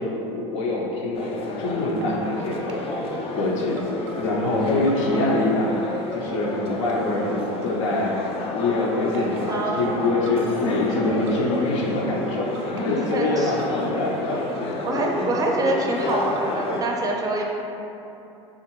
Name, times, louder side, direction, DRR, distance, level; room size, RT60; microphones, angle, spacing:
voice 1, 0.0-2.9 3.3-3.8 4.2-5.8 6.1-8.2 8.5-14.4 14.9-15.3, left 2 dB, 80° left, -2 dB, 0.7 m, -25 dB
sound 1, 1.1-16.8, left 2 dB, 40° left, 0.4 m, -31 dB
sound 2, 2.0-2.4 2.7-3.4 3.8-5.5 5.8-6.5 6.9-8.1 9.1-9.4 9.8-10.8 11.3-11.7 12.2-13.7 14.0-15.4 16.1-16.5, right 6 dB, 85° right, 0.4 m, -39 dB
voice 2, 9.5-10.0 13.1-13.5 14.8-17.4, right 2 dB, 25° right, 0 dB, 0.5 m, -25 dB
3.6 x 2.5 x 3.0 m, 2.9 s
hypercardioid pair, 95°, 16 cm